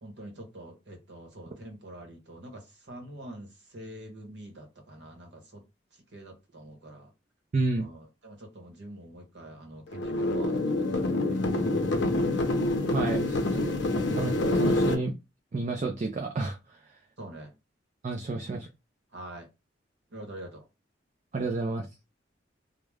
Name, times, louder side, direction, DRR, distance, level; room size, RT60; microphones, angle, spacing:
voice 1, 0.0-5.6 6.1-7.1 7.8-12.2 17.2-17.5 18.2-18.5 19.1-19.5 20.1-20.6, right 1 dB, 65° right, 0.9 m, -45 dB
voice 2, 7.5-7.9 12.8-13.7 14.1-15.1 15.5-16.6 18.0-18.7 21.3-21.9, right 3 dB, 40° right, 0.4 m, -30 dB
sound 1, 9.9-14.9, left 2 dB, 70° left, 0.5 m, -26 dB
2.3 x 2.0 x 3.2 m
head